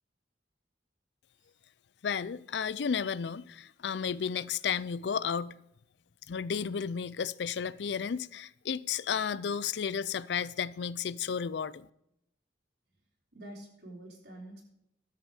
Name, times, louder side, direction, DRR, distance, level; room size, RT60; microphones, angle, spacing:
voice 1, 2.0-5.6 6.3-11.9, left 7 dB, 75° left, 0.4 m, -33 dB
voice 2, 13.3-14.7, right 1 dB, 70° right, 3.7 m, -47 dB
12.5 x 8.1 x 4.9 m
head